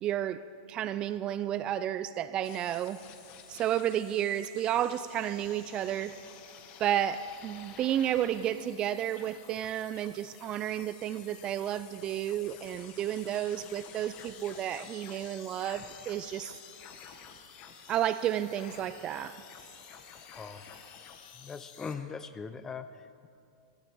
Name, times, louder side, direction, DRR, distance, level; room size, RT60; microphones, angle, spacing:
voice 1, 0.0-3.0 3.5-6.2 6.8-16.6 17.9-19.4, right 11 dB, 35° right, 0.3 m, -32 dB
sound 1, 2.4-21.9, left 7 dB, 45° left, 1.1 m, -51 dB
voice 2, 20.3-20.6 21.3-23.3, left 5 dB, 20° left, 0.6 m, -41 dB
16.5 x 11.0 x 3.5 m
hypercardioid pair, 105°, 3 cm